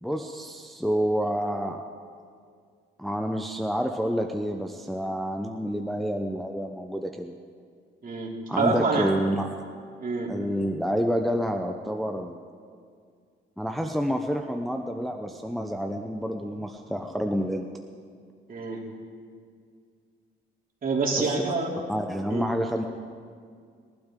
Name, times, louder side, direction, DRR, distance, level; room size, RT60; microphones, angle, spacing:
voice 1, 0.0-1.8 3.0-7.3 8.5-9.5 10.3-12.4 13.6-17.7 21.2-21.3 21.9-22.8, equal, ahead, 3 dB, 0.8 m, -28 dB
voice 2, 8.0-9.1 10.0-10.3 18.5-18.8 20.8-21.7 22.3-22.5, right 3 dB, 45° right, -2 dB, 3.1 m, -26 dB
21.0 x 12.0 x 3.8 m, 2.1 s
cardioid pair, 90°, 20 cm